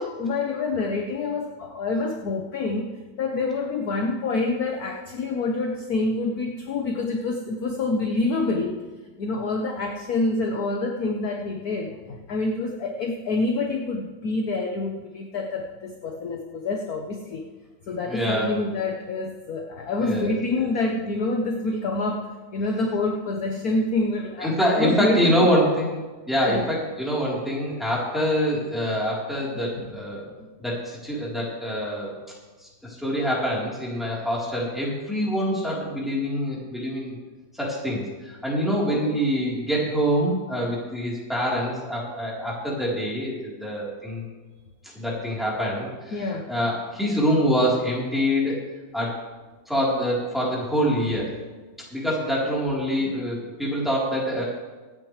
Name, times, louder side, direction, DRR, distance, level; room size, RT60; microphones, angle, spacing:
voice 1, 0.0-8.8 9.2-17.4 17.9-25.6 26.5-26.6 29.7-29.9 38.9-39.2 46.1-46.5, left 3 dB, 55° left, 2 dB, 1.3 m, -27 dB
voice 2, 18.1-18.5 20.0-20.3 24.4-25.9 26.3-30.3 30.6-32.1 32.8-37.2 37.6-44.2 44.9-48.6 48.9-49.1 49.7-51.3 51.9-54.4, equal, ahead, -6 dB, 3.6 m, -25 dB
24.0 x 9.5 x 3.3 m, 1.3 s
omnidirectional pair, 2.2 m